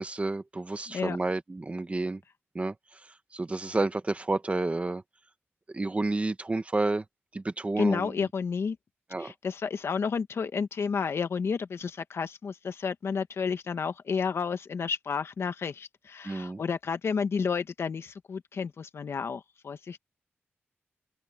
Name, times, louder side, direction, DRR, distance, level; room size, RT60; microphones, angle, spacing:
voice 1, 0.0-2.2 2.5-5.0 5.7-7.0 7.3-8.1 9.1-9.3 16.2-16.6, right 2 dB, 30° right, 1.6 m, -30 dB
voice 2, 7.8-8.8 9.2-20.0, left 5 dB, 70° left, 1.5 m, -31 dB
open air
cardioid pair, 80°, 4 cm